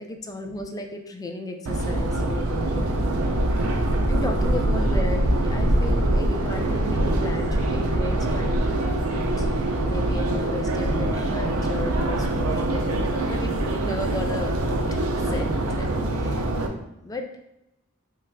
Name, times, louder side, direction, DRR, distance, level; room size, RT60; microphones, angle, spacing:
voice 1, 0.0-3.3 3.7-3.8 4.1-14.6 14.9-17.4, left 2 dB, 15° left, 4 dB, 0.3 m, -35 dB
Subway metro underground, 1.7-16.7, right 1 dB, 85° right, 0.5 m, -24 dB
5.8 x 2.4 x 2.2 m, 0.88 s
head